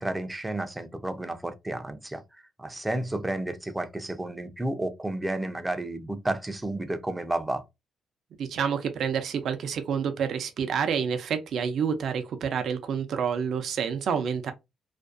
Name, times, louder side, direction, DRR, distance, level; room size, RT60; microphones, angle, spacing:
voice 1, 0.0-2.2 2.6-7.6, right 1 dB, 10° right, 0.5 m, -31 dB
voice 2, 8.4-14.5, right 7 dB, 65° right, 0.5 m, -28 dB
2.5 x 2.2 x 2.4 m
cardioid pair, 90°, 0 cm